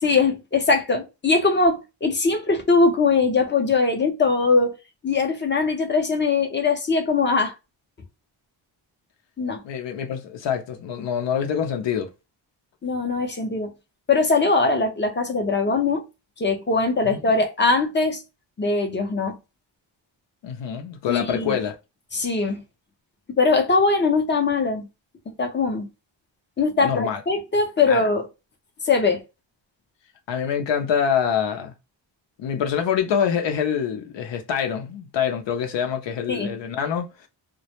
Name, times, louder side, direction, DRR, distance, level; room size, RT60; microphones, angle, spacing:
voice 1, 0.0-4.7 5.0-7.5 9.4-9.6 12.8-13.7 14.1-16.0 16.4-18.2 18.6-19.4 21.1-21.6 22.1-22.6 23.4-24.8 25.4-25.9 26.6-28.3 28.8-29.2 36.3-36.5, left 4 dB, 25° left, 0.5 m, -21 dB
voice 2, 9.6-12.1 17.0-17.2 20.4-21.7 26.8-27.2 27.9-28.0 30.3-31.7 32.4-37.3, left 8 dB, 70° left, 0.6 m, -25 dB
2.1 x 2.0 x 2.8 m
wide cardioid pair, 125°, 46 cm